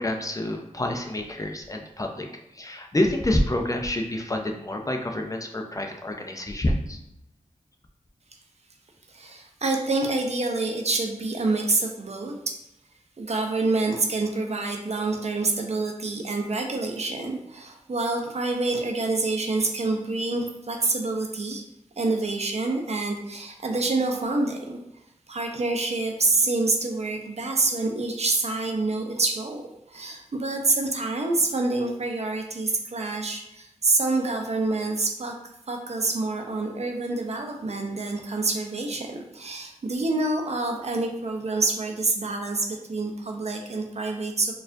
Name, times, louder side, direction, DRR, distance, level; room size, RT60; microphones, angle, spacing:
voice 1, 0.0-2.3 2.5-7.0, left 1 dB, 25° left, 2 dB, 0.5 m, -27 dB
voice 2, 9.1-12.6 13.2-21.6 22.0-24.7 25.3-29.6 29.9-35.4 35.7-44.5, right 3 dB, 55° right, 3 dB, 0.6 m, -27 dB
4.2 x 2.4 x 2.6 m, 0.84 s
cardioid pair, 50°, 13 cm